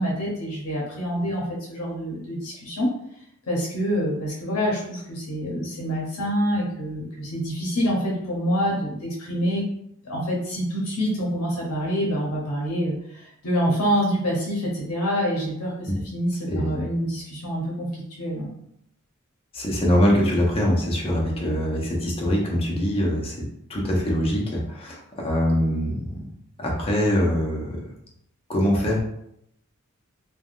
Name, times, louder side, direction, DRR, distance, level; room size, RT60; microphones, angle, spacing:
voice 1, 0.0-2.9 3.5-9.7 10.0-18.5, equal, 80° left, -4 dB, 0.7 m, -26 dB
voice 2, 16.5-16.8 19.5-23.4 23.7-26.2 26.6-27.8 28.5-29.0, equal, 25° left, -3 dB, 0.7 m, -23 dB
3.3 x 2.2 x 2.4 m, 0.74 s
head